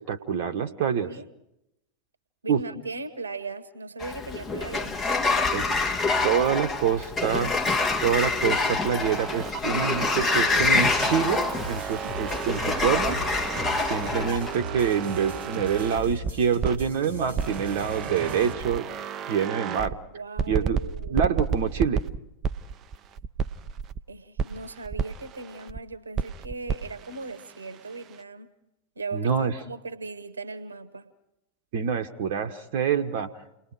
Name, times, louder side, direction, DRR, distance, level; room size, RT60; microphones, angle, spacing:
voice 1, 0.1-1.1 2.5-2.6 5.5-5.7 6.2-7.5 8.0-13.2 13.9-18.9 19.3-19.9 20.5-20.8 21.1-22.0 29.1-29.5 31.7-33.3, right 7 dB, 50° right, 6 dB, 1.1 m, -26 dB
voice 2, 2.4-5.0 20.1-21.2 24.1-28.5 28.9-31.1, right 3 dB, 75° right, 14 dB, 1.2 m, -38 dB
Sliding door, 4.0-14.5, left 3 dB, 25° left, 2.1 m, -26 dB
sound 1, 9.0-16.9 17.3-20.0 20.4-24.0 24.4-25.8 26.1-28.2, right 6 dB, 30° right, 0.7 m, -33 dB
sound 2, 10.5-18.5, right 1 dB, 85° left, 5.2 m, -39 dB
29.5 x 20.5 x 4.8 m, 0.85 s
figure-of-eight pair, 90°, 0 cm